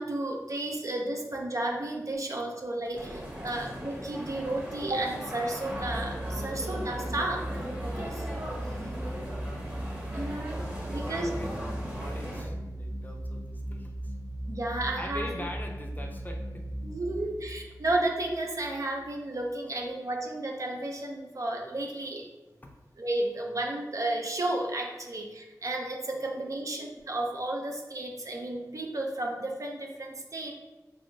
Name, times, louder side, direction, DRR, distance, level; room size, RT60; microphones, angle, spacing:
voice 1, 0.0-7.4 7.8-8.3 10.1-10.6 10.9-11.3 14.5-15.3 16.8-22.3 23.0-30.6, right 2 dB, 50° right, 1 dB, 0.5 m, -32 dB
sound 1, 2.9-12.4, equal, 20° right, 1.1 m, -38 dB
sound 2, 5.7-19.0, right 1 dB, ahead, 0.9 m, -38 dB
voice 2, 9.3-9.7 10.8-14.1 15.0-16.8 22.6-22.7 26.1-26.6, left 1 dB, 25° left, 2 dB, 0.5 m, -42 dB
3.4 x 3.4 x 2.6 m, 1.1 s
wide cardioid pair, 60°, 7 cm